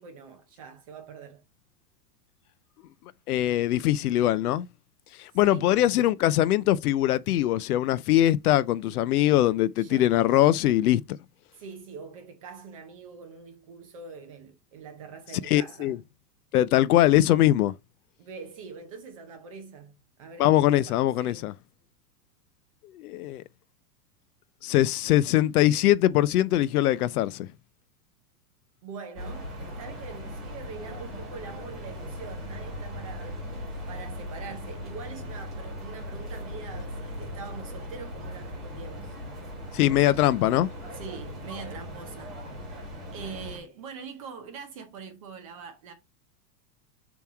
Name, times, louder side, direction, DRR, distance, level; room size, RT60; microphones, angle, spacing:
voice 1, 0.0-1.5 5.4-5.8 9.8-10.1 11.6-16.0 18.2-21.5 28.8-33.4 33.9-39.2 40.9-42.4 43.1-45.9, right 5 dB, 20° right, 0.5 m, -43 dB
voice 2, 3.3-4.7 5.2-11.0 15.5-16.0 16.5-17.7 20.4-21.5 22.9-23.4 24.6-27.5 39.7-40.7, left 13 dB, 65° left, 0.5 m, -22 dB
sound 1, 29.2-43.6, left 1 dB, ahead, 2.0 m, -38 dB
7.0 x 3.1 x 4.7 m
supercardioid pair, 175°, 50 cm